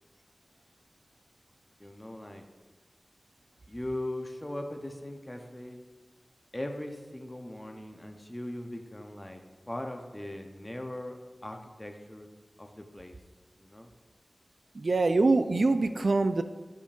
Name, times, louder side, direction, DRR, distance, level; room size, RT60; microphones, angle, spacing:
voice 1, 1.8-2.4 3.7-5.8 6.5-11.2 11.4-12.3 12.6-13.2 13.6-13.9, left 1 dB, 20° left, 4 dB, 0.7 m, -39 dB
voice 2, 14.8-16.4, right 3 dB, 70° right, 9 dB, 0.4 m, -24 dB
9.4 x 5.2 x 2.5 m, 1.3 s
wide cardioid pair, 60°, 0 cm